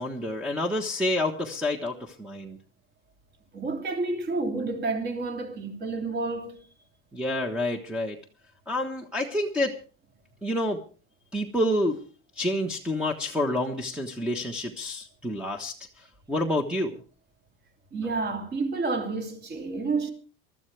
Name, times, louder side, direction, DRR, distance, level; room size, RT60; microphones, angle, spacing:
voice 1, 0.0-2.6 7.1-8.2 8.7-9.7 10.4-10.8 11.3-12.0 12.4-17.0, left 1 dB, 5° right, 1.3 m, -28 dB
voice 2, 3.5-6.7 17.9-20.1, right 3 dB, 30° right, 3.1 m, -30 dB
23.5 x 13.5 x 3.4 m
cardioid pair, 160°, 30 cm